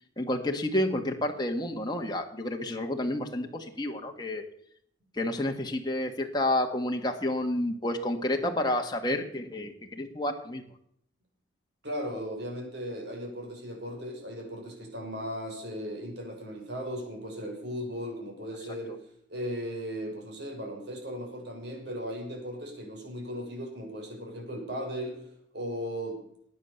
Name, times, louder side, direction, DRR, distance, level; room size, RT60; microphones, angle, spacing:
voice 1, 0.2-4.4 5.1-10.6, left 1 dB, 20° left, 2 dB, 1.7 m, -30 dB
voice 2, 11.8-19.0 19.3-26.2, equal, 55° right, 1 dB, 6.4 m, -37 dB
19.0 x 9.7 x 7.1 m, 0.68 s
head